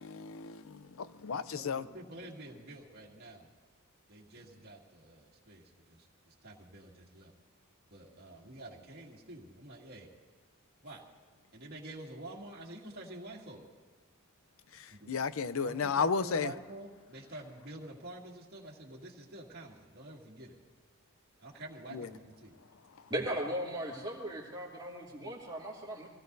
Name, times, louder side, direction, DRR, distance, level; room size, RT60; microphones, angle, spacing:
voice 1, 0.0-1.8 14.7-16.5 21.9-22.1, left 5 dB, 70° left, 0.6 m, -33 dB
voice 2, 1.5-3.5 4.1-7.3 7.9-10.1 10.8-11.0 11.5-13.7 14.9-15.1 15.6-20.6 21.4-22.6, right 1 dB, 50° right, 2.1 m, -48 dB
voice 3, 23.1-26.1, right 1 dB, 20° right, 2.6 m, -37 dB
24.0 x 17.5 x 2.7 m
head